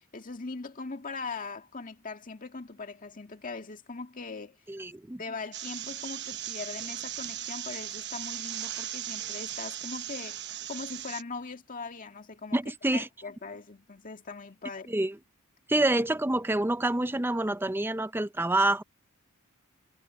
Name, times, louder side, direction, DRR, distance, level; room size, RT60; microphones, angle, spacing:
voice 1, 0.0-4.6 5.2-12.6 12.9-14.9, left 4 dB, 40° left, 2.0 m, -40 dB
voice 2, 4.7-5.2 12.5-13.1 14.9-15.1 15.7-18.8, right 2 dB, 10° right, 0.6 m, -27 dB
sound 1, 5.5-11.2, right 12 dB, 55° right, 1.0 m, -37 dB
head